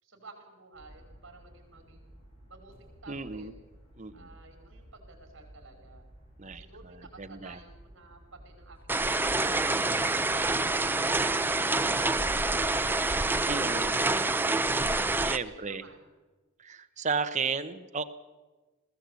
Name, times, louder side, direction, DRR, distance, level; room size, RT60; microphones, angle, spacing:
voice 1, 0.0-2.2 2.5-3.6 4.1-6.0 6.4-9.6 15.4-16.0, right 3 dB, 65° right, 4 dB, 5.3 m, -53 dB
sound 1, 0.7-13.8, right 1 dB, 30° left, 6.1 m, -54 dB
voice 2, 3.1-3.5 4.0-4.3 6.4-7.6 13.5-14.0 15.2-15.9 16.6-18.0, right 5 dB, 35° right, 9 dB, 1.0 m, -34 dB
sound 2, 8.9-15.4, right 2 dB, 10° right, 0.5 m, -27 dB
20.5 x 15.5 x 8.3 m, 1.2 s
head